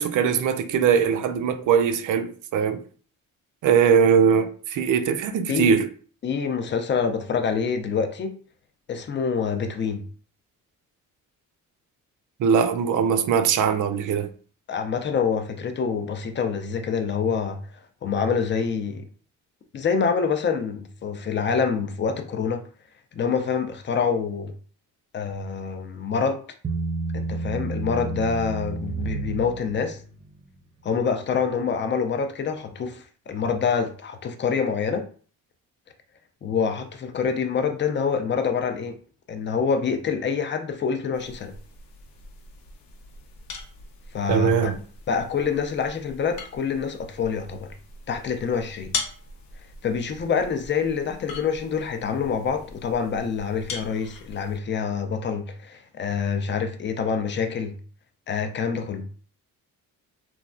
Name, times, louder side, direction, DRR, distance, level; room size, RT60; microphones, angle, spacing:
voice 1, 0.0-2.8 3.6-5.9 12.4-14.3 44.3-44.8, right 7 dB, 65° right, 0.5 m, -21 dB
voice 2, 6.2-8.3 8.9-10.0 14.7-17.6 18.0-19.1 19.7-22.6 23.1-24.5 25.1-26.4 27.1-30.0 30.8-35.1 36.4-39.0 39.3-41.5 44.1-44.7 45.1-47.7 48.1-48.9 49.8-57.8 58.3-59.0, left 6 dB, 35° left, 0.5 m, -26 dB
Bass guitar, 26.6-30.0, right 3 dB, 20° right, 0.7 m, -30 dB
sound 1, 41.1-54.6, left 4 dB, 85° left, 0.8 m, -40 dB
3.1 x 2.3 x 2.5 m
cardioid pair, 100°, 34 cm